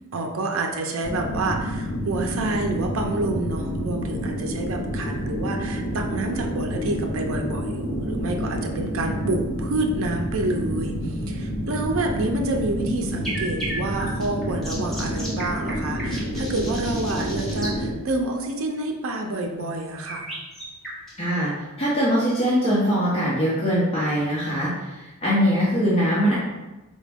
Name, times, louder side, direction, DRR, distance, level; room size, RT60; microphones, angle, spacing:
voice 1, 0.1-20.3, right 2 dB, 65° right, 2 dB, 0.4 m, -28 dB
sound 1, 1.0-17.9, equal, 80° left, 0.7 m, -29 dB
sound 2, 13.2-17.7 20.1-21.3, right 1 dB, ahead, 0.9 m, -34 dB
voice 2, 21.2-21.5 21.8-26.3, equal, 30° left, -9 dB, 0.8 m, -22 dB
3.9 x 2.1 x 3.4 m, 1.1 s
head